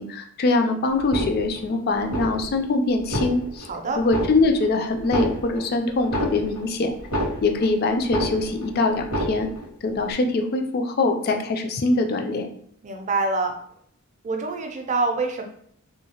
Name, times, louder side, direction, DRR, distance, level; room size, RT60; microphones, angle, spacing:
voice 1, 0.0-3.7 4.0-6.9 7.4-9.5 9.8-12.5, left 3 dB, 45° left, 5 dB, 0.4 m, -23 dB
sound 1, 1.0-1.7 2.0-2.6 3.0-3.7 4.0-4.7 5.0-7.7 8.0-8.7 9.0-9.7 10.0-10.1, equal, 80° left, 1.3 m, -29 dB
voice 2, 3.7-4.0 12.8-13.6 14.2-15.4, right 3 dB, 35° right, 4 dB, 0.4 m, -25 dB
2.7 x 2.7 x 2.8 m, 0.65 s
head